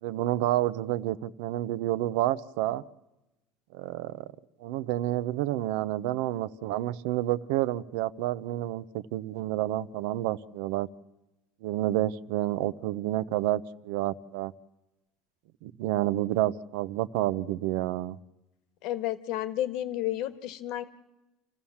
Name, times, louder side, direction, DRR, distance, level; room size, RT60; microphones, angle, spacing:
voice 1, 0.0-2.8 3.7-4.3 4.6-10.9 11.6-14.5 15.6-18.2, right 14 dB, 75° right, 17 dB, 0.7 m, -29 dB
voice 2, 18.8-20.8, left 13 dB, 60° left, 12 dB, 1.5 m, -31 dB
29.0 x 14.5 x 7.2 m, 1.0 s
cardioid pair, 140°, 0 cm